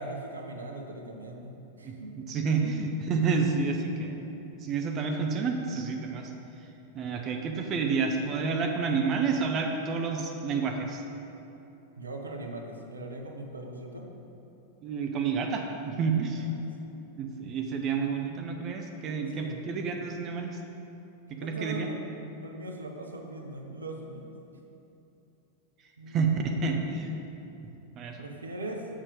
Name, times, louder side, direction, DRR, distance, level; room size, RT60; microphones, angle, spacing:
voice 1, 0.0-2.2 11.9-14.1 16.3-16.5 19.3-19.6 21.3-22.0 22.4-24.3 26.0-26.8 28.2-28.9, right 1 dB, 75° right, 2 dB, 0.8 m, -40 dB
voice 2, 1.8-4.4 4.6-6.3 6.9-11.0 14.8-16.5 17.2-20.6 21.3-21.9 26.1-27.1 28.0-28.2, right 5 dB, 30° right, 3 dB, 0.7 m, -29 dB
7.3 x 6.5 x 5.1 m, 2.9 s
figure-of-eight pair, 90°, 0 cm